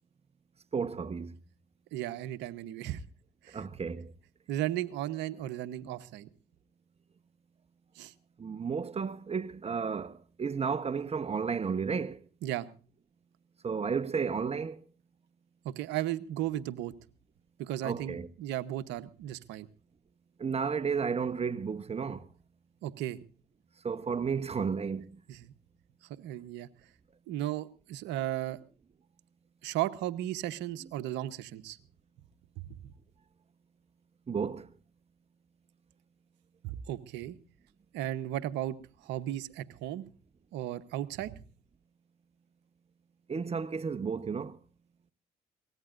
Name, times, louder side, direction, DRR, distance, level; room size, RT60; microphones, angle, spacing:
voice 1, 0.7-1.3 3.5-4.1 8.4-12.2 13.6-14.8 17.8-18.3 20.4-22.3 23.8-25.2 34.3-34.7 43.3-44.6, right 6 dB, 35° right, 1.1 m, -33 dB
voice 2, 1.9-3.0 3.4-3.7 4.5-6.3 8.0-8.1 12.4-12.7 15.6-16.9 17.6-19.7 22.8-23.2 25.3-25.5 26.1-26.7 27.3-28.6 29.6-31.8 32.6-32.8 36.6-37.4 37.9-38.8 39.0-40.0 40.5-41.4, right 13 dB, 80° right, 1.0 m, -35 dB
23.5 x 18.0 x 2.6 m
supercardioid pair, 60°, 18 cm